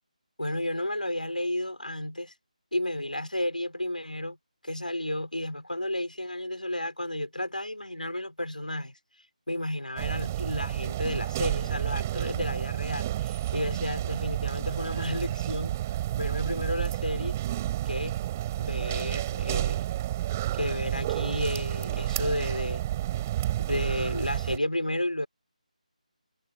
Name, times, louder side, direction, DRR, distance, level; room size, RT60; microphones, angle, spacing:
voice 1, 0.4-2.3 2.7-4.4 4.6-9.0 9.5-15.8 16.2-17.4 17.9-18.2 18.6-19.8 20.5-22.8 23.7-25.3, left 1 dB, 80° left, 6.0 m, -32 dB
sound 1, 10.0-24.6, right 14 dB, 20° right, 5.4 m, -30 dB
figure-of-eight pair, 155°, 4 cm